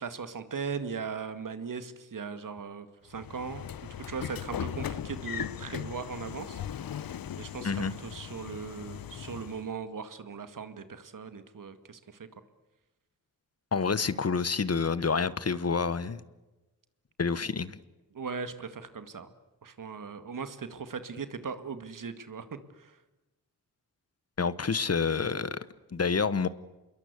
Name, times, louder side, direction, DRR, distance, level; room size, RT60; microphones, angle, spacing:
voice 1, 0.0-3.7 4.0-6.6 7.4-12.3 18.1-19.3 19.6-23.0, right 5 dB, 60° right, 10 dB, 2.1 m, -39 dB
Train / Sliding door, 3.1-9.7, left 9 dB, 75° left, 1.0 m, -38 dB
voice 2, 13.7-16.2 17.2-17.8 24.4-25.6 25.9-26.5, left 5 dB, 45° left, 16 dB, 1.2 m, -28 dB
27.5 x 22.0 x 8.3 m, 1.1 s
cardioid pair, 55°, 35 cm